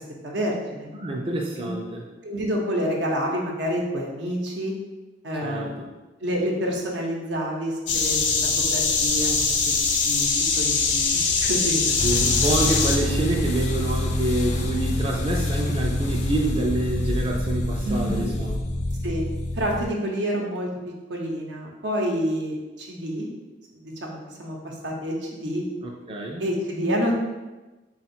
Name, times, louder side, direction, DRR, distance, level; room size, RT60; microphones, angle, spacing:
voice 1, 0.0-0.9 1.6-1.7 2.2-4.7 5.2-5.9 6.2-9.4 10.0-12.0 17.8-18.3 19.0-19.2 19.5-20.7 21.1-23.3 23.7-25.6 26.4-27.2, equal, 85° right, -1 dB, 0.8 m, -28 dB
voice 2, 0.9-2.1 5.4-5.9 12.0-18.6 25.8-26.5, right 2 dB, 30° right, 0 dB, 0.4 m, -27 dB
sound 1, 7.9-13.0, left 4 dB, 85° left, 0.6 m, -22 dB
sound 2, 12.0-19.9, left 1 dB, 40° left, 0.4 m, -26 dB
3.7 x 2.3 x 4.3 m, 1.1 s
head